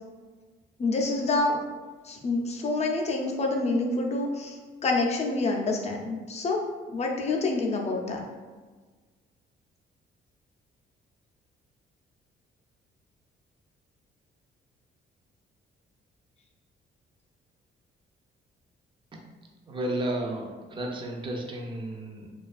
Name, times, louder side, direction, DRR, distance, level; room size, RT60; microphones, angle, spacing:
voice 1, 0.8-1.6 2.0-6.6 6.9-8.2, left 2 dB, 35° left, 1 dB, 0.4 m, -27 dB
voice 2, 19.7-22.3, right 1 dB, 25° right, 0 dB, 0.4 m, -33 dB
2.3 x 2.2 x 2.3 m, 1.4 s
cardioid pair, 90°, 20 cm